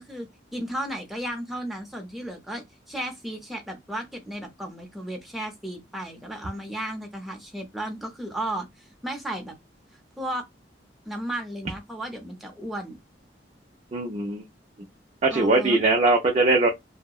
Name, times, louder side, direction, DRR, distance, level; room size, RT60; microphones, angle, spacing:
voice 1, 0.0-9.5 10.2-10.4 11.1-13.0 15.3-15.8, right 1 dB, ahead, 0.7 m, -34 dB
voice 2, 13.9-14.4 15.2-16.7, right 2 dB, 35° right, 0.4 m, -21 dB
2.7 x 2.1 x 2.3 m
head